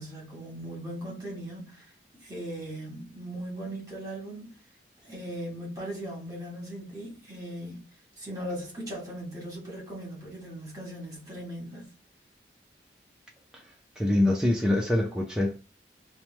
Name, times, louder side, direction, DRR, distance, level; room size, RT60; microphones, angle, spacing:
voice 1, 0.0-1.9 2.2-4.5 5.0-7.9 8.2-11.9, right 1 dB, 20° right, 1.2 m, -38 dB
voice 2, 14.0-15.6, left 1 dB, 5° right, 0.4 m, -25 dB
3.0 x 2.1 x 3.1 m
head